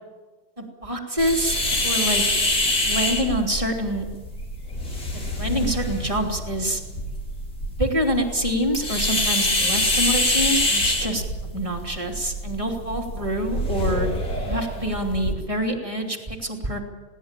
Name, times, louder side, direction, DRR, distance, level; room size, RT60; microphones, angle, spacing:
voice 1, 0.6-2.2 2.9-4.0 5.4-6.8 7.8-11.2 11.5-14.1 14.5-16.8, equal, 15° right, 1 dB, 3.0 m, -26 dB
sound 1, 1.2-15.3, left 1 dB, 45° left, 4.1 m, -26 dB
21.0 x 17.5 x 9.1 m, 1.3 s
omnidirectional pair, 1.9 m